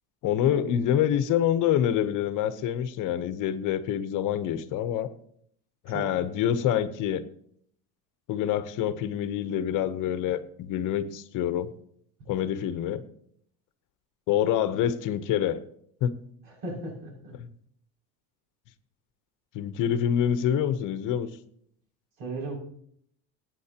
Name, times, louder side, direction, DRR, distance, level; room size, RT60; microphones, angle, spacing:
voice 1, 0.2-5.1 5.8-7.2 8.3-11.7 12.3-13.0 14.3-15.6 16.0-16.1 17.3-17.5 19.5-21.3, left 10 dB, 55° left, 12 dB, 1.0 m, -26 dB
voice 2, 16.4-17.3 22.2-22.6, right 2 dB, 80° right, -1 dB, 6.2 m, -37 dB
22.0 x 9.2 x 2.9 m, 0.66 s
cardioid pair, 150°, 36 cm